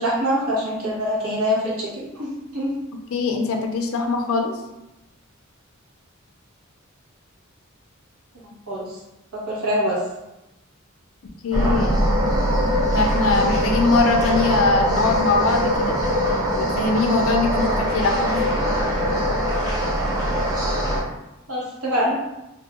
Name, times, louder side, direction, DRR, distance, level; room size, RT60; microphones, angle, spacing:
voice 1, 0.0-2.8 8.7-8.9 9.3-10.0 21.5-22.2, equal, 90° right, -5 dB, 1.0 m, -24 dB
voice 2, 3.1-4.5 11.4-12.0 12.9-16.0 16.5-18.5, left 3 dB, 70° left, 3 dB, 0.4 m, -22 dB
sound 1, 11.5-21.0, equal, 20° right, 0.7 m, -22 dB
2.6 x 2.2 x 2.9 m, 0.93 s
head